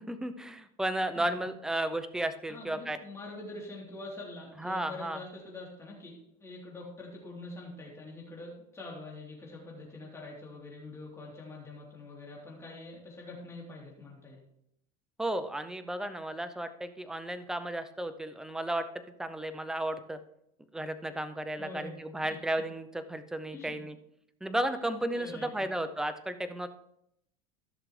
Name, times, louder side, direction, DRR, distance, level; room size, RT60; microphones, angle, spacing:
voice 1, 0.0-3.0 4.6-5.2 15.2-18.9 19.2-20.2 20.7-24.0 24.4-26.7, right 1 dB, 5° right, 10 dB, 0.6 m, -34 dB
voice 2, 2.5-14.4 21.6-22.0 23.5-23.8 25.1-25.7, left 2 dB, 15° left, -3 dB, 3.4 m, -45 dB
15.0 x 6.5 x 3.2 m, 0.77 s
supercardioid pair, 140°, 20 cm